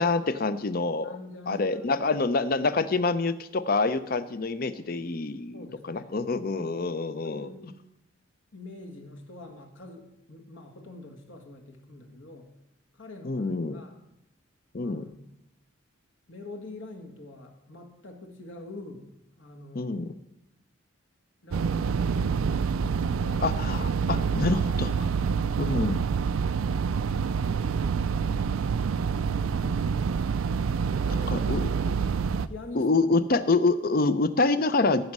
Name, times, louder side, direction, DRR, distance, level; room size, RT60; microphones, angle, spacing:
voice 1, 0.0-1.1 1.5-7.5 13.2-13.8 14.7-15.1 19.7-20.1 23.4-24.9 25.6-26.0 31.3-31.9 32.7-35.1, left 3 dB, 45° left, 13 dB, 0.6 m, -26 dB
voice 2, 1.0-1.9 4.7-4.8 5.5-6.1 6.5-6.7 7.1-7.8 8.5-12.5 12.9-14.0 14.8-15.1 16.3-19.1 19.4-19.9 21.4-22.1 22.9-23.6 24.1-24.6 27.3-28.4 29.0-30.2 30.6-31.7 32.4-32.9, left 2 dB, 65° left, 3 dB, 1.6 m, -45 dB
sound 1, 21.5-32.5, right 6 dB, 90° right, 0.4 m, -27 dB
15.0 x 5.3 x 6.1 m, 0.87 s
head